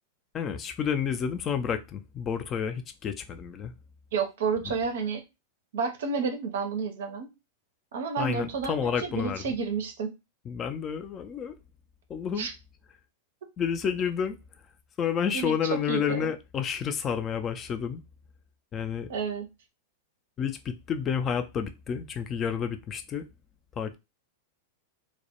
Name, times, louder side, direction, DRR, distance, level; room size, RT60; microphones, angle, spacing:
voice 1, 0.3-3.7 8.2-9.4 10.5-11.6 12.1-12.5 13.6-14.4 15.0-18.0 18.7-19.1 20.4-23.3 23.8-24.0, left 7 dB, 30° left, 0.4 m, -30 dB
voice 2, 4.1-5.2 5.7-7.3 7.9-10.1 12.4-12.5 15.3-15.5 15.9-16.3 19.1-19.5, right 5 dB, 65° right, 0.5 m, -30 dB
2.1 x 2.0 x 2.8 m
figure-of-eight pair, 95°, 0 cm